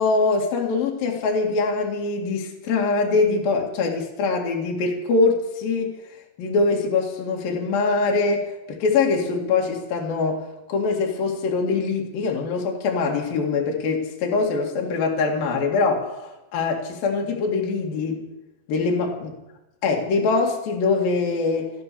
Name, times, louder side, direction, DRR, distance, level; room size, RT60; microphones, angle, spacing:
voice 1, 0.0-5.9 6.4-18.3 18.7-19.3 19.8-21.7, left 4 dB, 55° left, 0 dB, 3.5 m, -23 dB
14.5 x 13.5 x 7.0 m, 0.97 s
omnidirectional pair, 5.7 m